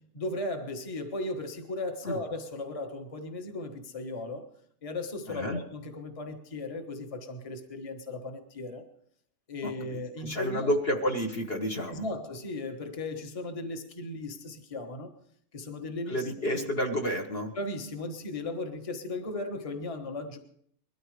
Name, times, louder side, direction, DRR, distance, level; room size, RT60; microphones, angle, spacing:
voice 1, 0.1-4.5 4.8-8.8 9.5-10.7 11.9-15.1 15.5-16.7 17.5-20.4, left 2 dB, 25° left, 4 dB, 1.4 m, -36 dB
voice 2, 5.3-5.6 9.6-12.0 16.1-17.5, equal, 45° left, 2 dB, 1.6 m, -30 dB
21.5 x 13.5 x 3.3 m, 0.64 s
omnidirectional pair, 1.4 m